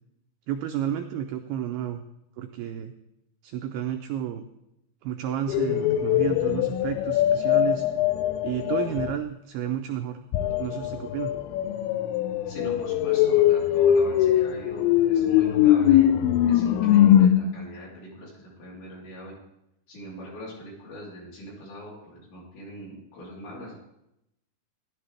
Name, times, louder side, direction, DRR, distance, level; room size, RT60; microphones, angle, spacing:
voice 1, 0.5-2.0 2.4-2.9 3.4-4.5 5.0-7.9 8.4-10.2 10.6-11.3, right 10 dB, 90° right, 6 dB, 2.2 m, -31 dB
sound 1, 5.5-9.2 10.3-17.3, left 11 dB, 85° left, 2.2 m, -21 dB
voice 2, 12.5-19.3 19.9-23.8, equal, 70° left, -5 dB, 5.8 m, -42 dB
14.0 x 12.0 x 3.3 m, 0.84 s
omnidirectional pair, 5.1 m